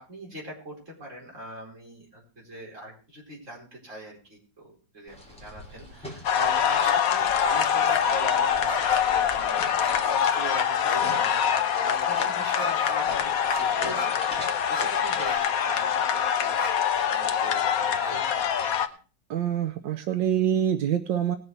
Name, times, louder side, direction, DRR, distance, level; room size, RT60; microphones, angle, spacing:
voice 1, 0.0-11.4 11.8-18.2, right 1 dB, 45° right, -3 dB, 4.9 m, -40 dB
sound 1, 5.1-15.4, left 1 dB, 5° left, 3.2 m, -44 dB
sound 2, 6.2-18.9, left 8 dB, 60° left, 1.2 m, -25 dB
sound 3, 7.6-8.2 8.6-9.2 9.8-10.4 10.9-11.0 12.5-13.0 13.5-13.6 13.9-14.1 14.7-14.8 15.2-15.4 15.9-16.0 16.6-16.7, left 3 dB, 25° left, 0.5 m, -34 dB
voice 2, 19.3-21.4, right 10 dB, 90° right, 8 dB, 1.5 m, -25 dB
19.0 x 7.0 x 4.7 m, 0.37 s
omnidirectional pair, 1.9 m